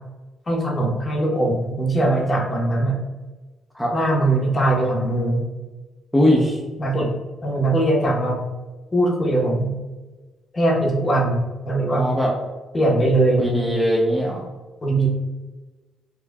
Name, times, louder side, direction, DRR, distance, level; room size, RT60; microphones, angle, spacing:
voice 1, 0.5-3.0 3.9-5.4 6.8-7.1 7.4-8.5 8.9-9.7 10.5-12.1 12.7-13.5 14.8-15.1, right 1 dB, 30° left, -1 dB, 1.0 m, -20 dB
voice 2, 6.1-6.6 11.9-12.3 13.4-14.5, equal, 5° left, -3 dB, 0.7 m, -20 dB
4.6 x 2.5 x 2.2 m, 1.2 s
cardioid pair, 90°, 0 cm